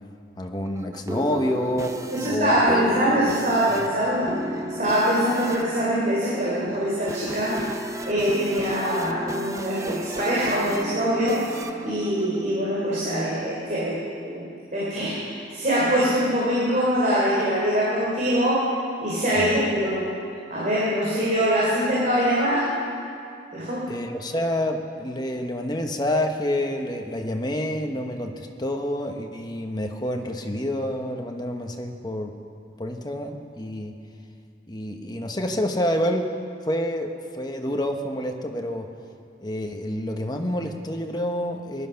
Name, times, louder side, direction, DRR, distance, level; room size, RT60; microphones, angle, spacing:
voice 1, 0.4-2.6 3.7-3.8 19.3-19.5 23.9-32.3 32.8-33.9 34.7-36.3 36.6-37.1 37.3-38.9 39.4-41.9, left 1 dB, 20° left, 4 dB, 1.1 m, -28 dB
sound 1, 0.6-13.1, right 1 dB, 15° right, 0.7 m, -34 dB
voice 2, 2.1-4.3 4.8-7.6 8.0-11.4 11.8-18.7 19.0-20.0 20.5-22.7 23.5-23.9, equal, 45° right, -7 dB, 3.4 m, -23 dB
19.5 x 12.0 x 5.8 m, 2.5 s
head